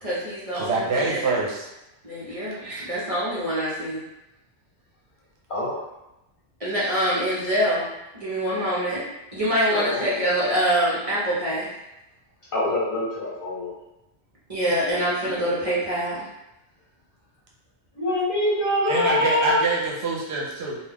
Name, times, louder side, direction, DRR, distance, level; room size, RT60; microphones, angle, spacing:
voice 1, 0.0-1.2 2.0-4.0 6.6-7.9 8.1-9.0 9.3-11.7 14.5-16.2, equal, 35° right, -9 dB, 0.7 m, -25 dB
voice 2, 0.5-1.7 2.6-3.0 7.0-7.1 18.8-20.8, right 3 dB, 70° right, -3 dB, 0.9 m, -26 dB
voice 3, 5.5-5.8 9.7-10.1 12.5-13.7 17.9-19.6, left 1 dB, 50° left, -8 dB, 1.1 m, -24 dB
2.3 x 2.3 x 3.3 m, 0.93 s
omnidirectional pair, 1.2 m